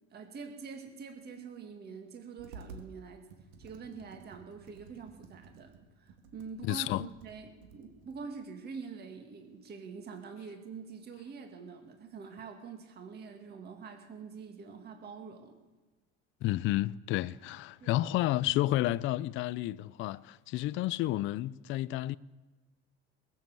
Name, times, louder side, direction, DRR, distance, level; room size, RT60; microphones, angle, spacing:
voice 1, 0.1-3.3 3.6-15.6 17.8-18.1, right 5 dB, 30° right, 1.8 m, -45 dB
Computer keyboard, 2.4-2.9 3.3-8.2, right 4 dB, 70° right, 2.2 m, -53 dB
voice 2, 6.6-7.1 16.4-22.2, left 16 dB, 40° left, 0.4 m, -31 dB
20.0 x 7.3 x 7.6 m
supercardioid pair, 135°, 33 cm